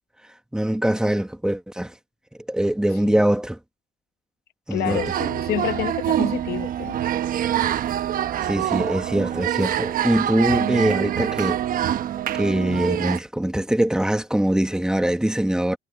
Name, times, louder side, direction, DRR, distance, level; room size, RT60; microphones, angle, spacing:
voice 1, 0.5-1.9 2.5-3.6 4.7-5.0 8.4-11.6 12.3-15.8, right 1 dB, 5° right, 1.5 m, -22 dB
voice 2, 4.7-7.0, left 13 dB, 70° left, 1.0 m, -29 dB
sound 1, 4.8-13.2, right 11 dB, 55° right, 1.0 m, -25 dB
cardioid pair, 110°, 17 cm